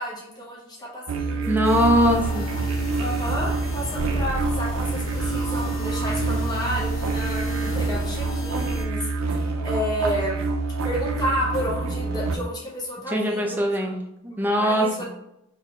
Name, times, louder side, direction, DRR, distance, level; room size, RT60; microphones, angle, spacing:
voice 1, 0.0-1.5 3.0-9.0 9.3-10.5 10.8-13.6 14.6-14.9, equal, 20° left, -4 dB, 0.8 m, -31 dB
sound 1, 1.1-12.4, right 3 dB, 70° right, 0.4 m, -27 dB
voice 2, 1.5-2.5 13.1-13.9 14.2-15.0, equal, 10° right, 1 dB, 0.5 m, -21 dB
sound 2, 1.6-8.9, left 1 dB, 65° left, 0.7 m, -34 dB
3.8 x 2.8 x 2.8 m, 0.82 s
head